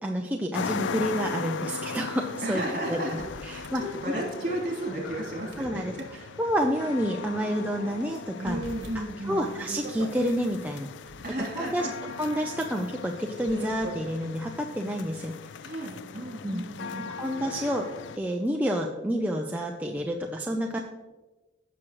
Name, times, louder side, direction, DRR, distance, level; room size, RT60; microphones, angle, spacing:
voice 1, 0.0-2.6 2.9-3.8 5.6-5.9 6.4-8.6 9.2-10.9 11.6-11.9 12.2-15.4 16.4-16.6 17.1-17.9 18.2-20.8, equal, 10° right, 1 dB, 0.4 m, -29 dB
sound 1, 0.5-18.2, left 5 dB, 70° left, 0.4 m, -39 dB
sound 2, 2.1-2.2 2.4-2.5 3.2-6.6 6.9-7.0 7.6-8.1 8.5-10.3 10.9-14.2, right 1 dB, 60° right, 1.5 m, -44 dB
voice 2, 2.4-6.3 8.4-9.4 11.2-11.9 15.6-17.3 20.7-20.8, right 1 dB, 40° right, -1 dB, 2.9 m, -34 dB
16.0 x 6.2 x 3.0 m, 1.2 s
head